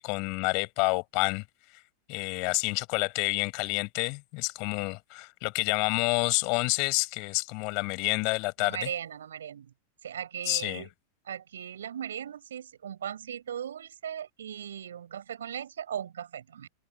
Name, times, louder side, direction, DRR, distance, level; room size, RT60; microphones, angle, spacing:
voice 1, 0.0-1.4 2.1-8.9 10.5-10.9, left 31 dB, 45° left, 7.2 m, -28 dB
voice 2, 8.6-9.7 10.0-10.9 11.2-16.7, right 9 dB, 65° right, 7.7 m, -38 dB
open air
figure-of-eight pair, 90°, 0 cm